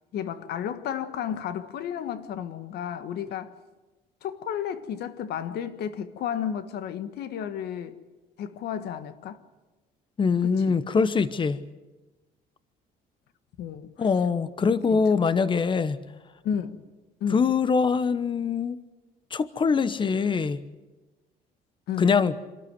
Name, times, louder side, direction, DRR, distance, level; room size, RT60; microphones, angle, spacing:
voice 1, 0.1-3.5 4.2-8.0 8.4-9.4 10.4-10.8 13.6-14.1 14.6-15.1 16.4-16.9 17.2-17.4 21.9-22.2, left 8 dB, 70° left, 1.5 m, -33 dB
voice 2, 10.2-11.6 14.0-16.0 17.3-18.8 19.3-20.6 22.0-22.3, left 5 dB, 30° left, 1.0 m, -23 dB
26.5 x 13.5 x 9.6 m
cardioid pair, 110°, 17 cm